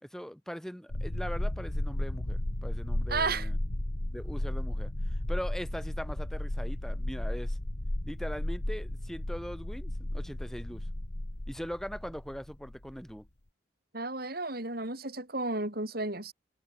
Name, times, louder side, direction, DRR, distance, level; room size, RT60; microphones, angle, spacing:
voice 1, 0.0-3.6 4.1-7.6 8.1-10.9 11.5-13.3, equal, ahead, 6.1 m, -41 dB
sound 1, 0.9-13.1, left 1 dB, 60° left, 2.1 m, -34 dB
voice 2, 3.1-3.5 13.9-16.3, right 3 dB, 50° right, 5.0 m, -33 dB
head